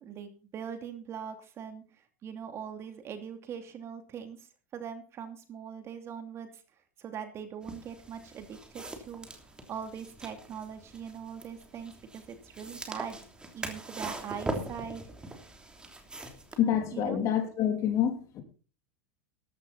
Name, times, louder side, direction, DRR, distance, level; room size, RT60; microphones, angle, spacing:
voice 1, 0.0-6.5 7.0-9.3 9.7-13.2 13.5-15.0 16.9-17.2, right 7 dB, 35° right, 7 dB, 2.7 m, -41 dB
sound 1, 7.6-16.6, right 2 dB, 10° right, 3.1 m, -42 dB
voice 2, 16.6-18.4, left 9 dB, 45° left, 6 dB, 3.3 m, -27 dB
14.5 x 11.5 x 4.2 m, 0.35 s
hypercardioid pair, 105°, 8 cm